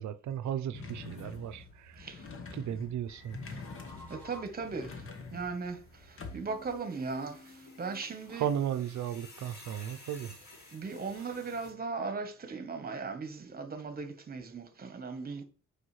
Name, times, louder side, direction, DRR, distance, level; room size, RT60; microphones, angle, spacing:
voice 1, 0.0-2.1 2.5-3.4 8.3-10.3, right 9 dB, 75° right, 0.6 m, -35 dB
sound 1, 0.7-6.7, left 4 dB, 45° left, 1.3 m, -46 dB
sound 2, 3.1-11.7, left 2 dB, 65° left, 4.0 m, -55 dB
sound 3, 3.3-4.7 6.1-9.0, left 1 dB, 5° left, 3.8 m, -54 dB
voice 2, 4.1-4.9 5.3-5.8 6.3-7.4 7.8-8.5 10.7-15.4, right 4 dB, 30° right, 1.1 m, -37 dB
8.6 x 4.9 x 3.2 m
cardioid pair, 115°, 29 cm